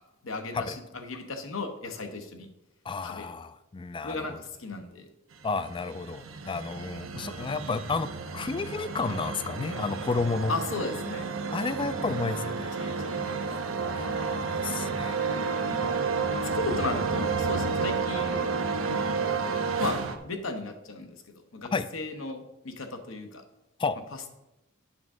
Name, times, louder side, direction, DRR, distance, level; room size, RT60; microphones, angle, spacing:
voice 1, 0.2-2.5 3.0-3.3 4.0-5.1 10.5-11.3 11.7-12.3 12.8-13.4 15.6-16.0 16.5-18.5 18.9-19.5 19.8-20.0 20.2-21.2 21.5-23.4, left 3 dB, 75° left, 5 dB, 1.0 m, -35 dB
voice 2, 2.9-4.4 5.4-10.5 11.5-12.8 13.8-15.1 21.7-21.9 23.8-24.0, left 4 dB, 25° left, 13 dB, 0.4 m, -32 dB
sound 1, 5.4-20.2, right 5 dB, 75° right, 0.7 m, -31 dB
8.8 x 3.5 x 6.2 m, 0.94 s
head